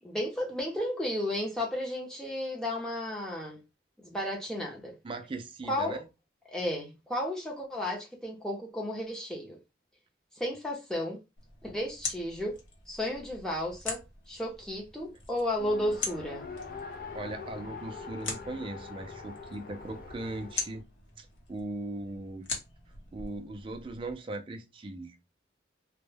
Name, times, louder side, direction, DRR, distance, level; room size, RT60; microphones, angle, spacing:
voice 1, 0.0-3.6 4.0-5.0 5.7-6.0 6.5-9.6 10.3-11.2 11.6-12.6 12.9-16.5, left 1 dB, 5° left, 0.6 m, -33 dB
voice 2, 5.0-6.0 17.1-20.8 21.2-22.5 23.1-25.2, right 2 dB, 25° right, 0.3 m, -39 dB
sound 1, 11.4-24.1, left 4 dB, 75° left, 0.8 m, -42 dB
Race car auto racing, 15.6-20.8, left 4 dB, 50° left, 0.4 m, -43 dB
2.1 x 2.1 x 3.2 m
head